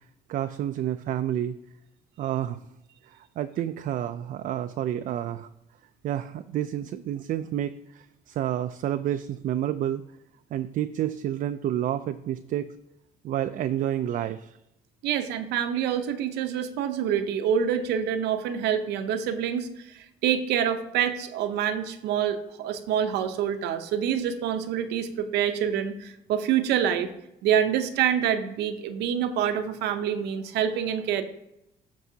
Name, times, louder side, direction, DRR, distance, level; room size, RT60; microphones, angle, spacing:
voice 1, 0.3-1.6 2.2-2.6 3.1-5.5 6.0-10.0 10.5-12.7 13.2-14.5, right 11 dB, 55° right, 10 dB, 0.4 m, -29 dB
voice 2, 15.0-27.1 27.4-31.2, right 9 dB, 80° right, 9 dB, 0.7 m, -26 dB
13.5 x 4.7 x 2.8 m, 0.85 s
cardioid pair, 110°, 17 cm